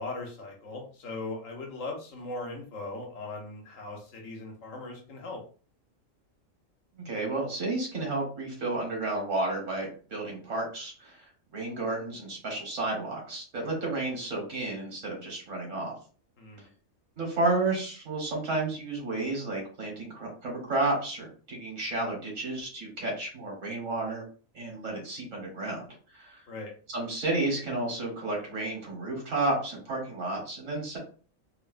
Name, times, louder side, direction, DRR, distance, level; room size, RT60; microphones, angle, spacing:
voice 1, 0.0-5.4 16.4-16.7 26.5-26.7, left 2 dB, 75° left, 1 dB, 1.3 m, -39 dB
voice 2, 7.1-16.0 17.2-24.3 24.5-25.8 26.1-26.4 26.9-31.0, right 2 dB, 70° right, -1 dB, 1.6 m, -32 dB
3.5 x 2.1 x 2.4 m, 0.39 s
omnidirectional pair, 1.4 m